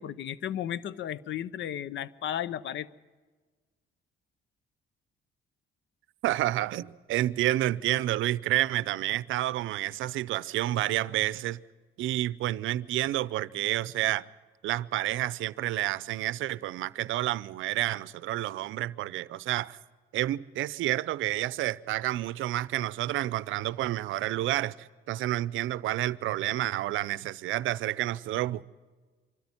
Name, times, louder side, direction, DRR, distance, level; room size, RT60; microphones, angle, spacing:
voice 1, 0.0-2.9, left 10 dB, 70° left, 0.7 m, -34 dB
voice 2, 6.2-11.6 12.0-14.3 14.6-19.8 20.1-28.6, right 15 dB, 80° right, 0.6 m, -29 dB
24.5 x 13.0 x 9.7 m
cardioid pair, 90°, 20 cm